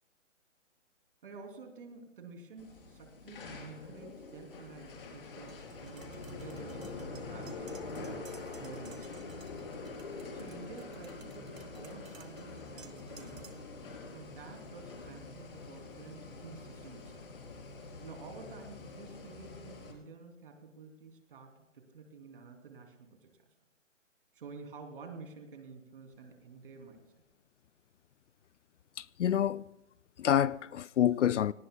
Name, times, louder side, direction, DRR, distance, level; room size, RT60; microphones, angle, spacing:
voice 1, 1.2-8.2 8.6-9.5 10.3-13.5 14.1-17.2 18.0-23.3 24.3-27.0, right 4 dB, 45° right, 3.1 m, -50 dB
sound 1, 2.6-19.9, left 3 dB, 45° left, 3.7 m, -45 dB
Tap, 5.5-13.8, right 5 dB, 85° right, 2.0 m, -56 dB
voice 2, 29.0-29.6 30.2-31.5, left 10 dB, 65° left, 0.5 m, -27 dB
28.5 x 18.5 x 2.3 m
hypercardioid pair, 170°, 38 cm